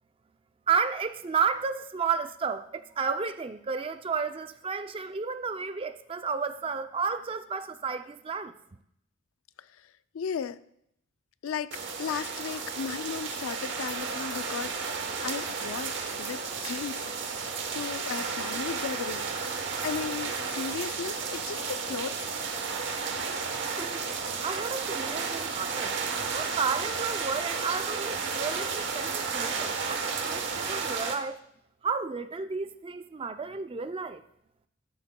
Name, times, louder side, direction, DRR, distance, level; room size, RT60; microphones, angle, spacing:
voice 1, 0.7-8.5 23.8-24.0 24.4-25.9 26.3-31.4 31.8-34.2, right 5 dB, 25° right, 0.4 m, -32 dB
voice 2, 9.6-10.6 11.4-17.1 17.7-22.3, left 7 dB, 90° left, 0.4 m, -36 dB
sound 1, 11.7-31.2, right 5 dB, 60° right, 1.0 m, -33 dB
13.0 x 11.0 x 2.2 m
head